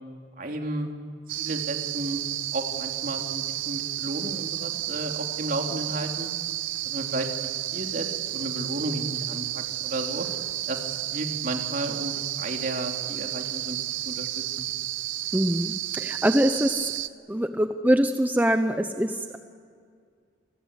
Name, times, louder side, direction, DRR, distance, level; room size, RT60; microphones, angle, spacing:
voice 1, 0.4-0.9 1.4-2.2 2.5-6.3 6.8-10.3 10.7-14.7, right 1 dB, 45° right, 3 dB, 3.2 m, -33 dB
sound 1, 1.3-17.1, right 14 dB, 80° right, 0.8 m, -32 dB
voice 2, 15.3-16.9 17.3-19.4, equal, 10° right, 7 dB, 0.9 m, -24 dB
29.0 x 21.5 x 8.4 m, 2.1 s
head